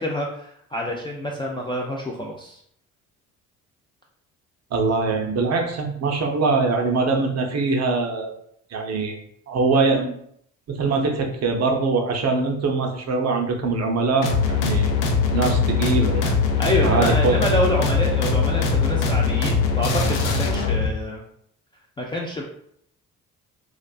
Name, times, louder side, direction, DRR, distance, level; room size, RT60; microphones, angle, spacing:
voice 1, 0.0-2.6 16.6-21.2 22.0-22.4, equal, 15° left, -2 dB, 0.3 m, -27 dB
voice 2, 4.7-8.3 8.7-10.1 10.7-14.9 15.3-16.4 16.8-17.4, right 3 dB, 40° right, 3 dB, 0.5 m, -23 dB
sound 1, 14.2-20.9, left 5 dB, 70° left, 0.5 m, -21 dB
2.4 x 2.2 x 2.3 m, 0.68 s
hypercardioid pair, 45°, 40 cm